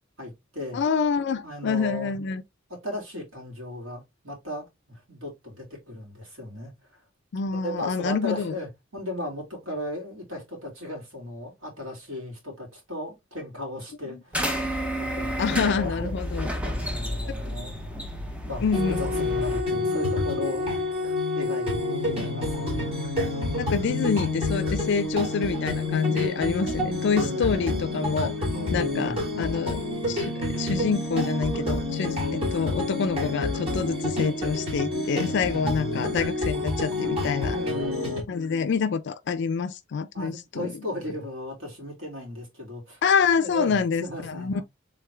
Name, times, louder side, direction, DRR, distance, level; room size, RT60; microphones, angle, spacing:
voice 1, 0.2-0.8 1.4-2.1 2.7-6.7 7.5-14.7 14.9-17.9 18.4-20.7 21.3-21.7 22.0-23.0 26.7-27.5 28.5-29.3 35.5-36.0 37.5-38.3 40.1-43.0 43.4-44.6, left 1 dB, 80° right, 2.6 m, -36 dB
voice 2, 0.7-2.4 7.3-8.5 14.1-14.2 15.4-16.5 18.6-19.3 23.5-28.3 28.7-29.8 30.1-37.6 38.3-40.7 43.0-44.6, left 5 dB, 60° left, 0.4 m, -27 dB
sound 1, 14.3-19.6, equal, 5° right, 0.7 m, -31 dB
sound 2, 18.7-38.2, left 2 dB, 30° right, 2.0 m, -28 dB
3.7 x 3.4 x 3.3 m
head